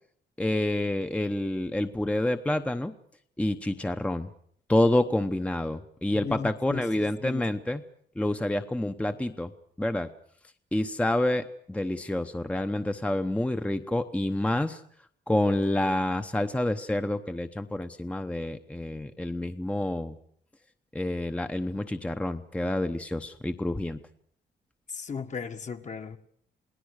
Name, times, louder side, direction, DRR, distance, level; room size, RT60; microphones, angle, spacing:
voice 1, 0.4-2.9 3.4-4.3 4.7-7.8 8.2-9.5 9.8-10.1 10.7-14.8 15.3-20.1 20.9-24.0, left 1 dB, 5° left, 8 dB, 0.9 m, -28 dB
voice 2, 6.1-7.6 24.9-26.2, left 6 dB, 40° left, 7 dB, 1.6 m, -37 dB
28.0 x 19.0 x 6.5 m, 0.64 s
cardioid pair, 115°, 19 cm